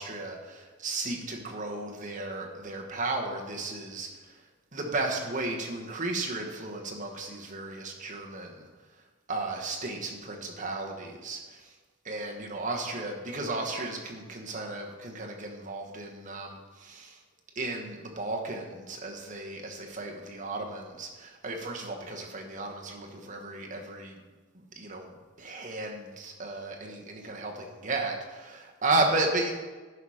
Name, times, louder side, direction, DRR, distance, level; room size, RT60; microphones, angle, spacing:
voice 1, 0.0-4.3 4.7-8.7 9.3-11.7 12.0-17.2 17.5-24.2 24.8-25.1 25.4-29.6, right 2 dB, 35° right, 1 dB, 1.2 m, -34 dB
10.5 x 5.7 x 4.9 m, 1.3 s
head